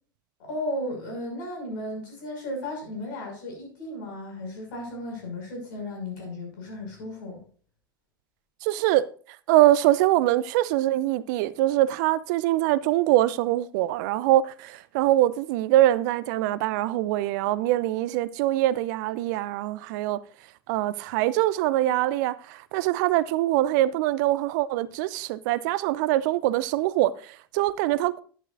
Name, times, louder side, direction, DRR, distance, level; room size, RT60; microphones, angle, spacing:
voice 1, 0.4-7.4, left 1 dB, 60° left, 5.8 m, -35 dB
voice 2, 8.6-9.0 9.5-20.2 20.7-28.2, right 15 dB, 55° right, 0.5 m, -23 dB
11.5 x 10.5 x 2.6 m
figure-of-eight pair, 85°, 12 cm